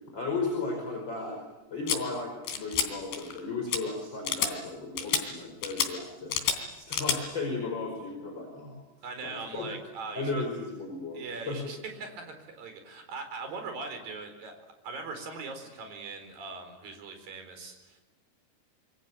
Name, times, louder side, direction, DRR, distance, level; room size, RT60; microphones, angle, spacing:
voice 1, 0.1-1.4 1.7-6.4 6.7-8.8 9.2-9.8 10.2-11.7, left 3 dB, 25° left, 1 dB, 5.6 m, -35 dB
sound 1, 1.9-2.0 2.5-2.9 3.1-3.4 3.7-3.8 4.3-4.5 5.0-5.2 5.6-5.9 6.3-6.6 6.9-7.2, left 8 dB, 80° left, 5.1 m, -28 dB
voice 2, 9.0-10.4 11.1-14.5 14.8-18.0, right 4 dB, 55° right, 6 dB, 6.0 m, -40 dB
27.0 x 25.0 x 8.4 m, 1.1 s
omnidirectional pair, 4.8 m